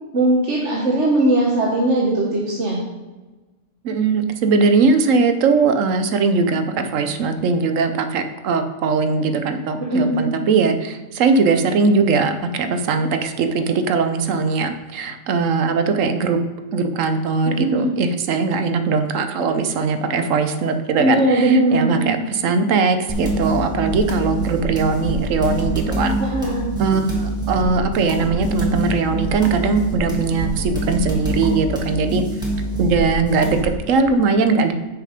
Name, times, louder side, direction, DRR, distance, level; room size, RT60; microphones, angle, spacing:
voice 1, 0.1-2.8 9.8-10.2 17.5-17.9 21.0-22.1 26.2-26.6, right 1 dB, 65° right, -3 dB, 1.4 m, -19 dB
voice 2, 3.8-16.4 16.7-26.1 26.8-32.2 32.8-34.7, right 4 dB, 85° right, 8 dB, 1.1 m, -20 dB
sound 1, 23.1-33.7, right 1 dB, 5° right, 1.8 m, -25 dB
6.6 x 6.5 x 5.0 m, 1.2 s
omnidirectional pair, 1.3 m